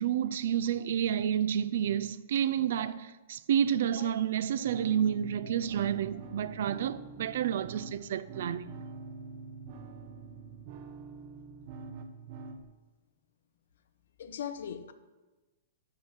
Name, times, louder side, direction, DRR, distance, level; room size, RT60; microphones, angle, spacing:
voice 1, 0.0-8.7, right 9 dB, 65° right, 0.4 m, -30 dB
sound 1, 4.6-12.6, right 4 dB, 50° right, 0.9 m, -45 dB
voice 2, 14.2-14.9, left 8 dB, 75° left, 0.7 m, -40 dB
6.3 x 5.5 x 5.7 m
hypercardioid pair, 125°, 0 cm